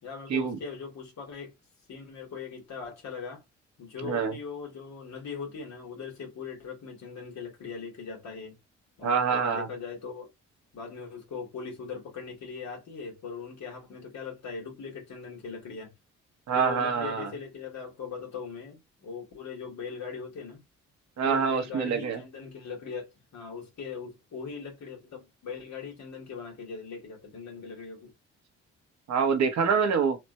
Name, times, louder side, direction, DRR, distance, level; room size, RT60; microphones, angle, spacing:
voice 1, 0.0-1.5 1.9-3.4 3.8-8.6 9.0-10.3 10.7-15.9 16.5-20.6 21.2-28.1, left 5 dB, 65° left, 1.9 m, -40 dB
voice 2, 4.0-4.3 9.0-9.7 16.5-17.3 21.2-22.2 29.1-30.2, right 6 dB, 60° right, 1.0 m, -26 dB
4.2 x 2.5 x 2.2 m
supercardioid pair, 60°, 30 cm